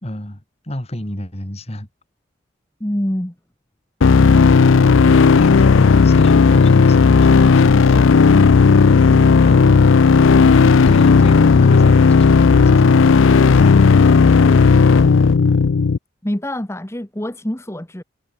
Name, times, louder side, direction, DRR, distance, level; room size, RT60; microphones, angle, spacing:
voice 1, 0.0-1.9 5.2-9.0 9.4-9.8 10.5-14.4, left 1 dB, 30° left, 2.6 m, -30 dB
voice 2, 2.8-3.3 16.2-18.0, left 1 dB, 15° left, 1.1 m, -25 dB
sound 1, 4.0-16.0, left 5 dB, 70° left, 0.5 m, -12 dB
head